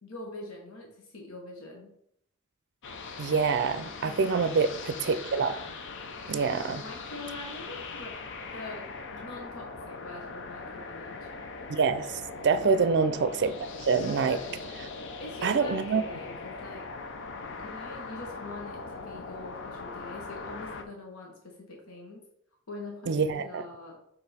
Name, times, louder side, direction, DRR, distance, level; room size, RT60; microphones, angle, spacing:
voice 1, 0.0-1.9 4.0-4.9 6.5-8.2 8.5-8.8 9.1-11.3 12.6-12.9 14.0-14.7 15.2-16.9 17.6-22.3 22.7-24.0, left 2 dB, 85° left, -1 dB, 1.3 m, -43 dB
sound 1, 2.8-20.8, left 4 dB, 60° left, 0.7 m, -41 dB
voice 2, 3.2-5.7 6.3-6.8 11.7-14.4 15.4-16.0 23.1-23.6, right 5 dB, 55° right, 12 dB, 0.5 m, -26 dB
6.8 x 3.7 x 4.2 m, 0.72 s
head